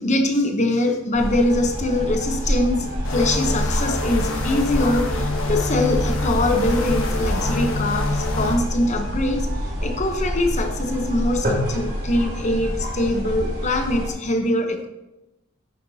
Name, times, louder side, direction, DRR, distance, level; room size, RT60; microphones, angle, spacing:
voice 1, 0.0-9.5 9.8-14.9, left 1 dB, 35° left, 5 dB, 0.9 m, -23 dB
sound 1, 1.1-14.1, equal, 50° right, 2.7 m, -27 dB
sound 2, 3.0-8.6, left 2 dB, 75° left, 1.2 m, -27 dB
sound 3, 4.1-11.2, left 1 dB, 10° left, 0.4 m, -33 dB
10.0 x 7.2 x 2.8 m, 0.97 s
head